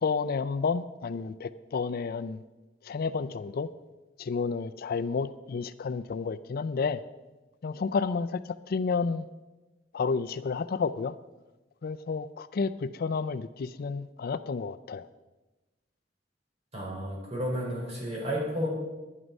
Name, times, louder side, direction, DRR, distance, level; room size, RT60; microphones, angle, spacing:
voice 1, 0.0-2.4 2.8-3.7 4.2-7.0 7.6-8.4 8.7-9.2 9.9-11.1 11.8-15.1, left 5 dB, 55° left, 13 dB, 0.4 m, -30 dB
voice 2, 16.7-18.7, equal, 35° right, -3 dB, 4.5 m, -32 dB
11.5 x 11.0 x 5.3 m, 1.1 s
head